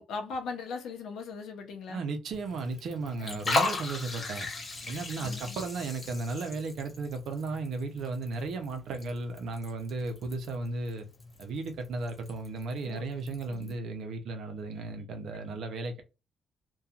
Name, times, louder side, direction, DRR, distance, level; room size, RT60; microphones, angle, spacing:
voice 1, 0.0-2.0 3.2-3.4 5.2-5.6 12.8-13.1 13.5-13.7 15.5-15.6, left 4 dB, 80° left, 0.7 m, -39 dB
voice 2, 1.9-4.5 4.9-11.1 11.4-16.0, right 3 dB, 70° right, 0.6 m, -35 dB
Liquid, 2.3-13.8, left 3 dB, 40° left, 1.0 m, -38 dB
2.7 x 2.3 x 2.4 m
cardioid pair, 90°, 0 cm